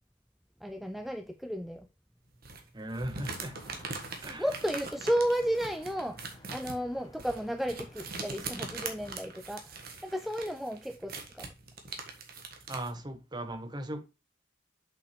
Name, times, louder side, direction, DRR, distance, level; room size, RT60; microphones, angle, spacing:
voice 1, 0.6-1.9 4.4-9.7 10.0-11.5, equal, ahead, 0.3 m, -33 dB
sound 1, 2.4-12.9, right 4 dB, 50° right, 1.5 m, -42 dB
voice 2, 2.7-3.6 4.2-4.4 12.7-14.0, right 1 dB, 20° right, 0.9 m, -37 dB
sound 2, 3.2-9.2, left 1 dB, 20° left, 0.9 m, -55 dB
7.4 x 5.8 x 3.2 m
head